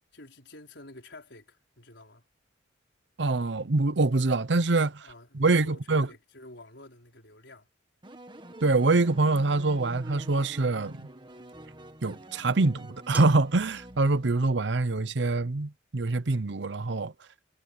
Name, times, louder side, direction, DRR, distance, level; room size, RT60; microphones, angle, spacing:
voice 1, 0.1-2.2 5.0-7.7, left 2 dB, 70° left, 4.9 m, -49 dB
voice 2, 3.2-5.1 5.3-6.1 8.6-11.1 12.0-17.1, right 3 dB, 70° right, 0.8 m, -25 dB
sound 1, 8.0-14.7, right 1 dB, 25° right, 1.7 m, -47 dB
sound 2, 9.6-10.0 11.5-11.6 13.1-13.6, right 3 dB, 10° right, 2.0 m, -42 dB
head